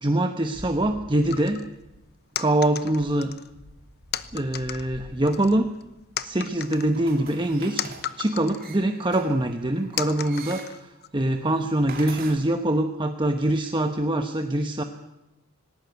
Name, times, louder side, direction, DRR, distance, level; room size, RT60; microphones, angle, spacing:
voice 1, 0.0-1.6 2.4-3.3 4.3-5.7 6.2-7.9 8.2-14.8, right 1 dB, 20° right, 6 dB, 1.1 m, -24 dB
sound 1, 0.5-7.0, equal, 65° right, 7.8 m, -48 dB
sound 2, 1.3-1.7 2.3-3.5 4.1-4.9 5.3-5.8 6.2-8.7 9.1-9.2 10.0-11.1, left 10 dB, 50° left, 0.9 m, -34 dB
sound 3, 6.6-12.4, right 5 dB, 45° right, 3.3 m, -44 dB
19.0 x 18.0 x 9.4 m, 0.96 s
head